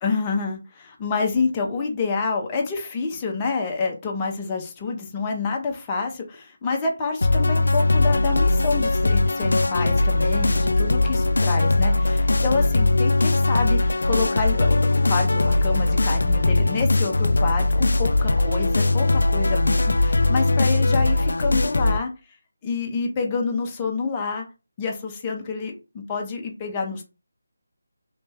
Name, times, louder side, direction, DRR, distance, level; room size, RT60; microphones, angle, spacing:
voice 1, 0.0-14.8 15.0-22.1 22.6-24.5 24.8-25.7 26.1-27.0, left 4 dB, 15° left, 1 dB, 0.7 m, -27 dB
sound 1, 7.2-22.0, left 2 dB, 80° left, 0.3 m, -20 dB
3.2 x 3.1 x 3.4 m, 0.29 s
figure-of-eight pair, 170°, 0 cm